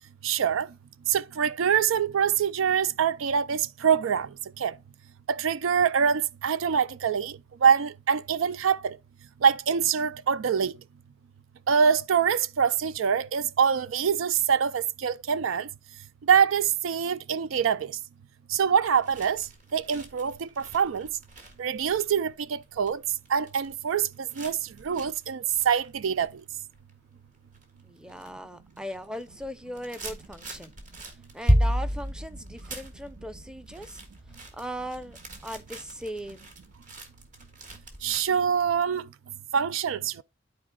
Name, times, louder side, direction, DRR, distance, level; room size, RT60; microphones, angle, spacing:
voice 1, 0.2-0.7 1.1-4.3 4.6-4.8 5.3-9.0 9.4-10.7 11.7-15.7 16.3-18.0 18.5-19.5 19.7-21.1 21.6-23.0 23.3-26.3 38.0-39.1 39.5-40.2, right 7 dB, 85° right, 0.4 m, -25 dB
sound 1, 18.9-27.1 27.5-28.3 28.6-38.3, equal, 40° right, 1.7 m, -33 dB
voice 2, 27.8-30.7 31.3-34.0 34.6-35.2 35.4-36.5, equal, 5° right, 0.6 m, -38 dB
12.5 x 4.4 x 2.3 m
head